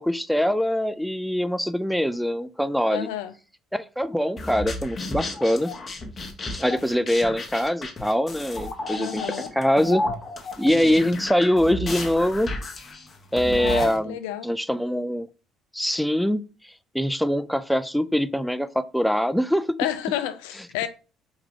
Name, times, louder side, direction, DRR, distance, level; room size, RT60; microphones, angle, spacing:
voice 1, 0.0-3.1 3.7-5.7 6.5-9.2 9.5-10.0 10.6-12.5 13.3-14.2 14.4-15.3 15.7-19.8, equal, ahead, 0.4 m, -23 dB
voice 2, 2.9-3.3 9.0-9.5 13.6-14.5 19.8-20.9, left 11 dB, 70° left, 0.4 m, -30 dB
sound 1, 4.4-14.0, left 2 dB, 35° left, 1.0 m, -33 dB
4.7 x 3.5 x 3.0 m
figure-of-eight pair, 55°, 0 cm